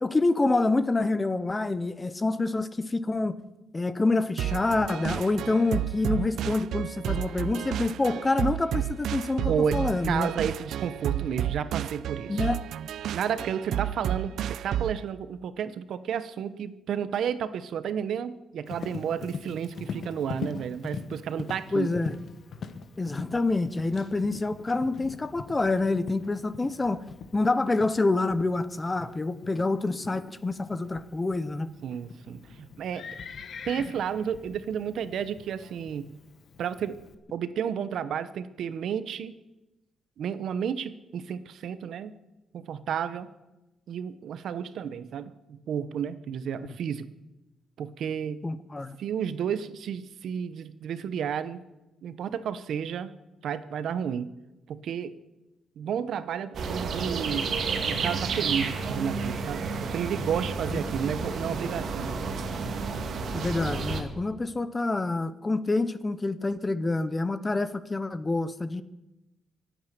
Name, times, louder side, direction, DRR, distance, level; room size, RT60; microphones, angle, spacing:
voice 1, 0.0-3.4 3.7-10.3 12.3-12.6 21.7-22.2 23.0-27.0 27.3-31.7 48.4-49.0 63.3-68.8, left 2 dB, 15° left, 14 dB, 0.7 m, -27 dB
sound 1, 4.4-15.0, right 11 dB, 85° right, 0.5 m, -31 dB
voice 2, 9.5-12.5 13.1-22.0 31.8-33.0 33.7-36.2 36.6-37.0 37.3-39.3 40.2-42.1 42.5-43.3 43.9-47.1 47.8-48.5 49.0-51.6 52.0-53.1 53.4-54.3 54.7-55.2 55.8-57.6 57.9-62.2, right 8 dB, 70° right, 13 dB, 1.0 m, -32 dB
Livestock farm animals working animals, 18.7-37.2, left 5 dB, 50° left, 1.3 m, -42 dB
sound 2, 56.5-64.0, right 4 dB, 50° right, 1.9 m, -31 dB
24.0 x 8.9 x 6.8 m, 0.99 s
wide cardioid pair, 160°, 0 cm